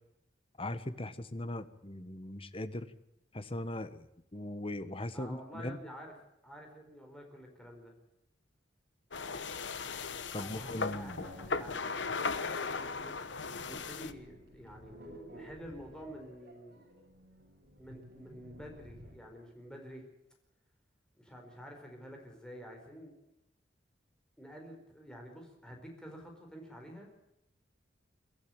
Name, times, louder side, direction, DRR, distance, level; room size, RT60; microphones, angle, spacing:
voice 1, 0.6-2.9 3.3-4.1 4.3-5.8 10.3-11.5, left 1 dB, 30° left, 12 dB, 1.2 m, -39 dB
voice 2, 5.1-6.1 6.4-7.9 10.3-13.2 13.6-14.9 15.3-16.8 17.8-20.0 21.2-23.1 24.4-27.1, equal, 5° left, 1 dB, 4.7 m, -49 dB
sound 1, 9.1-14.1, left 4 dB, 80° left, 1.1 m, -37 dB
sound 2, 10.8-19.4, equal, 55° right, 7.8 m, -54 dB
23.0 x 13.0 x 8.8 m, 0.83 s
head